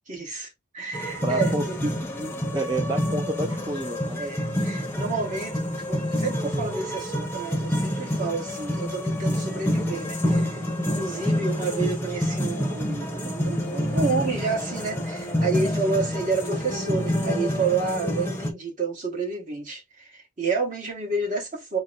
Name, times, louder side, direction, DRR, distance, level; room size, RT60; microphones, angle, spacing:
voice 1, 0.1-1.9 4.2-21.8, right 4 dB, 40° right, 1.4 m, -30 dB
sound 1, 0.9-18.5, left 1 dB, 10° left, 0.8 m, -27 dB
voice 2, 1.2-4.2, right 2 dB, 20° right, 0.4 m, -30 dB
3.9 x 2.1 x 4.0 m
head